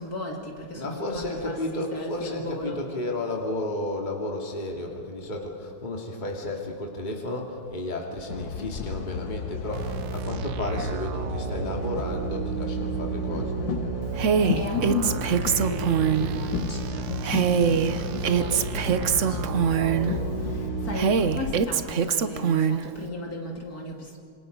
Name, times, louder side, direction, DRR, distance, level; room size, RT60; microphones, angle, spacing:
voice 1, 0.0-2.8 14.4-24.2, left 2 dB, 50° left, 0 dB, 3.0 m, -35 dB
voice 2, 0.7-13.6, left 1 dB, 25° left, 0 dB, 2.5 m, -32 dB
sound 1, 8.3-21.6, left 7 dB, 70° left, 2.0 m, -33 dB
sound 2, 9.7-21.0, right 12 dB, 75° right, 1.4 m, -33 dB
Female speech woman speaking, 14.2-16.3 17.2-20.1 20.9-22.8, right 7 dB, 55° right, 0.9 m, -23 dB
27.0 x 26.5 x 5.3 m, 2.4 s
omnidirectional pair, 2.1 m